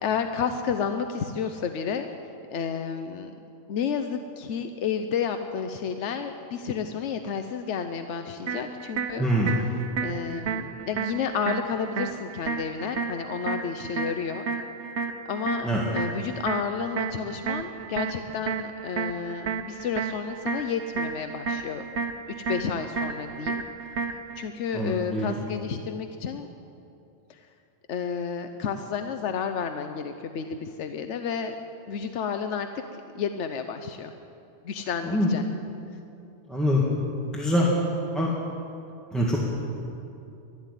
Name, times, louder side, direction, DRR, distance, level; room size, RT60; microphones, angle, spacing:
voice 1, 0.0-2.1 2.5-3.3 3.7-9.3 10.0-14.5 15.3-21.9 22.3-23.6 24.4-26.5 27.3-27.5 27.9-31.5 31.9-34.1 34.6-35.4, left 6 dB, 90° left, 7 dB, 1.0 m, -31 dB
sound 1, 8.5-24.5, right 5 dB, 80° right, 1.2 m, -33 dB
voice 2, 9.2-9.5 15.6-15.8 24.7-25.4 35.0-35.3 36.5-36.8 37.2-37.7 38.1-38.3 39.1-39.4, equal, ahead, -5 dB, 1.9 m, -24 dB
12.5 x 11.5 x 9.8 m, 2.7 s
omnidirectional pair, 1.2 m